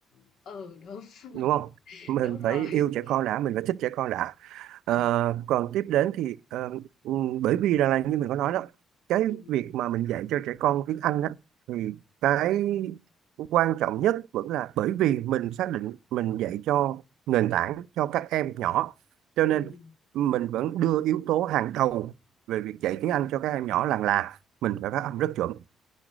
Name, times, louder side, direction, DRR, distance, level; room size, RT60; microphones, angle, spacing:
voice 1, 0.1-1.5 1.9-3.2 4.9-5.1 9.3-9.6 19.5-19.9, left 5 dB, 75° left, 2.4 m, -44 dB
voice 2, 1.3-1.7 2.1-8.7 9.1-11.4 11.7-13.0 13.4-17.0 17.3-18.9 19.4-19.7 20.1-22.1 22.5-25.6, right 13 dB, 90° right, 0.5 m, -26 dB
10.5 x 10.0 x 5.1 m
cardioid pair, 90°, 0 cm